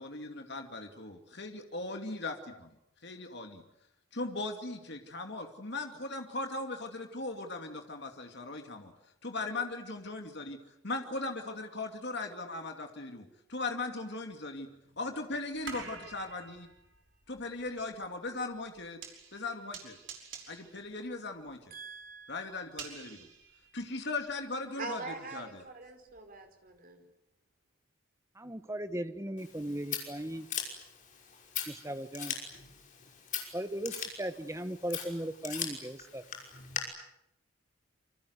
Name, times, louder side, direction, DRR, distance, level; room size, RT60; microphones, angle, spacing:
voice 1, 0.0-2.7 3.0-3.6 4.1-8.9 9.2-10.6 10.8-14.7 15.0-16.7 17.3-19.0 19.3-20.0 20.5-21.7 22.3-23.3 23.7-25.6, left 2 dB, 55° left, 4 dB, 2.5 m, -38 dB
sound 1, 13.6-13.7 14.3-24.4 24.7-26.4 26.8-26.9, right 5 dB, 60° right, 5.6 m, -50 dB
voice 2, 21.7-22.5 24.8-27.0, right 3 dB, 40° right, 5 dB, 4.9 m, -43 dB
voice 3, 28.4-30.5 31.7-32.3 33.5-36.2, right 1 dB, 15° right, 10 dB, 1.2 m, -37 dB
Scissors, 29.4-36.8, left 7 dB, 40° left, 5.7 m, -41 dB
27.5 x 25.0 x 8.1 m, 0.83 s
head